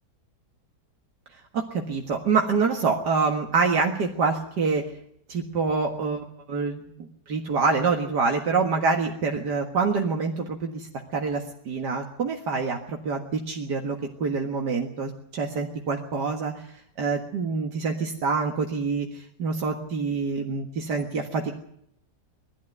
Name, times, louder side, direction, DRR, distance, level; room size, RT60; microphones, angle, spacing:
voice 1, 1.5-4.8 5.3-6.2 6.5-6.8 7.3-16.7 17.0-21.5, right 4 dB, 75° right, 2 dB, 2.3 m, -26 dB
22.0 x 13.0 x 9.3 m, 0.74 s
omnidirectional pair, 1.8 m